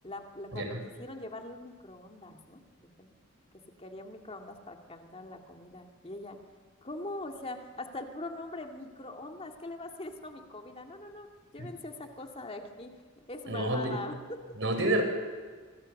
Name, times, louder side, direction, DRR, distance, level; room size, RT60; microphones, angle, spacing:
voice 1, 0.0-2.6 3.0-3.1 3.8-6.4 6.8-11.3 11.5-14.4, left 2 dB, 30° left, 3 dB, 2.5 m, -42 dB
voice 2, 13.5-14.0 14.6-15.0, right 1 dB, 60° right, 5 dB, 5.4 m, -29 dB
26.0 x 25.5 x 6.7 m, 1.5 s
head